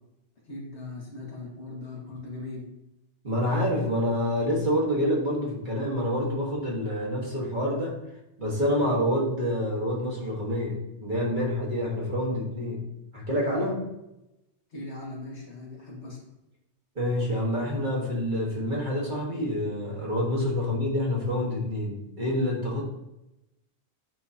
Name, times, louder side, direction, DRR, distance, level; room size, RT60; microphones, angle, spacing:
voice 1, 0.5-2.7 14.7-16.2, left 2 dB, 85° left, -4 dB, 2.1 m, -39 dB
voice 2, 3.2-8.0 8.4-12.8 13.1-13.9 16.9-22.8, left 1 dB, 45° right, -3 dB, 1.7 m, -27 dB
9.3 x 3.7 x 2.8 m, 0.91 s
omnidirectional pair, 1.1 m